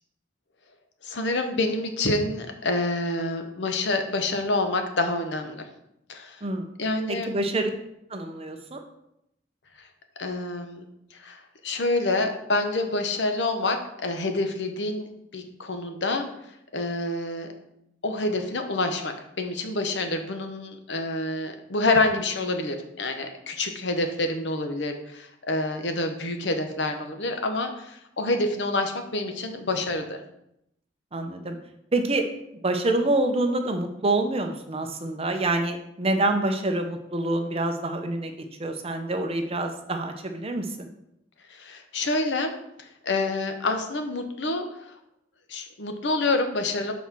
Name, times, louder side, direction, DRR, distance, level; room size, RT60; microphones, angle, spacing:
voice 1, 1.0-5.7 6.1-6.4 6.8-7.3 10.2-10.8 11.2-15.1 15.3-16.3 16.7-17.5 18.0-30.2 41.5-42.5 42.8-45.0 45.5-46.9, left 2 dB, 75° left, 6 dB, 0.9 m, -27 dB
voice 2, 7.1-7.7 8.1-8.8 31.1-31.6 31.9-32.3 32.6-38.3 38.6-40.9, right 2 dB, 35° right, 6 dB, 0.7 m, -26 dB
5.6 x 4.2 x 6.1 m, 0.80 s
head